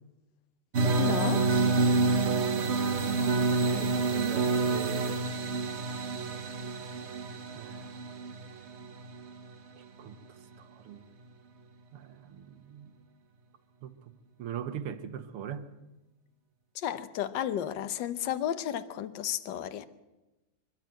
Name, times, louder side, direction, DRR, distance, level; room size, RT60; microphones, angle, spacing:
sound 1, 0.7-9.5, right 3 dB, 45° right, 1.0 m, -28 dB
voice 1, 1.0-1.5 16.7-19.8, left 10 dB, 60° left, 1.5 m, -33 dB
voice 2, 3.0-5.2 7.5-8.0 9.8-11.1 11.9-12.9 13.8-14.1 14.4-15.7, right 9 dB, 85° right, 2.2 m, -41 dB
25.5 x 12.0 x 9.1 m
omnidirectional pair, 2.4 m